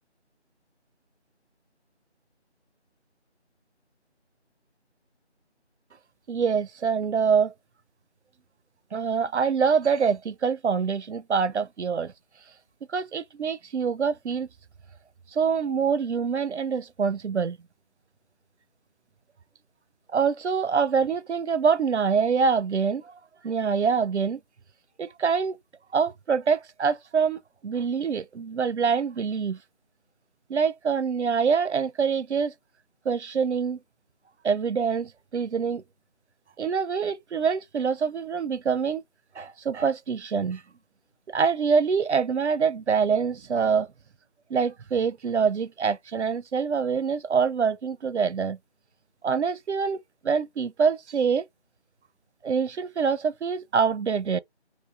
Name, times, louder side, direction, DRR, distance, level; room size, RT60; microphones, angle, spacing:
voice 1, 6.3-7.5 8.9-12.1 12.9-14.5 15.3-17.6 20.1-23.2 23.4-24.4 25.0-25.6 25.9-29.6 30.5-32.5 33.1-33.8 34.4-35.8 36.6-39.0 39.4-40.6 41.3-43.9 44.5-48.6 49.2-51.4 52.4-54.4, right 6 dB, 75° right, 0.5 m, -25 dB
3.2 x 2.7 x 2.3 m
figure-of-eight pair, 170°, 35 cm